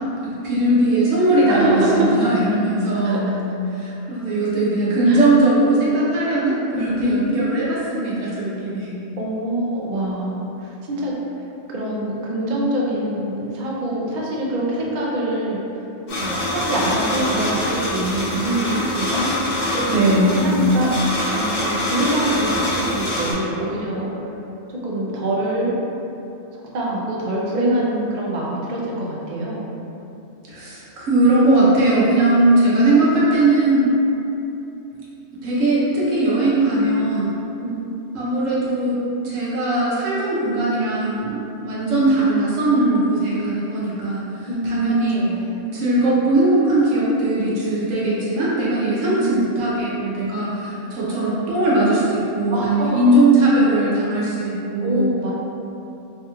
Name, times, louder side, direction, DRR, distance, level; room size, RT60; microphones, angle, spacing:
voice 1, 0.2-3.3 3.7-9.0 19.8-20.5 30.5-33.8 35.4-37.4 38.1-39.0 39.2-45.2 45.7-55.1, right 2 dB, 85° right, -7 dB, 1.2 m, -19 dB
voice 2, 1.4-2.1 3.0-3.4 5.1-5.2 6.7-8.0 9.2-11.1 11.7-15.6 16.2-19.3 19.7-24.3 24.8-25.7 26.7-29.7 37.6-38.1 44.5-45.6 49.0-49.6 52.5-53.0 54.8-55.3, right 1 dB, 60° right, -4 dB, 0.5 m, -25 dB
sound 1, 16.1-23.3, left 1 dB, 55° left, 1.0 m, -24 dB
3.3 x 2.3 x 2.9 m, 2.9 s
omnidirectional pair, 1.3 m